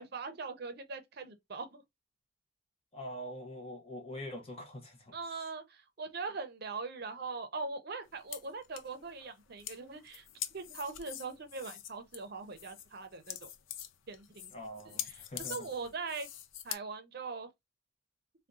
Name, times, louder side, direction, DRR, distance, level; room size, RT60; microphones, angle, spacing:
voice 1, 0.0-1.8 5.1-10.2 10.5-13.5 14.1-14.5 14.8-15.2 15.5-16.3 16.6-17.5, right 4 dB, 55° right, 0.6 m, -41 dB
voice 2, 2.9-5.1 14.5-15.7, equal, 30° left, 0.9 m, -44 dB
sound 1, 8.1-16.8, left 11 dB, 85° left, 0.4 m, -44 dB
3.5 x 2.2 x 2.5 m
head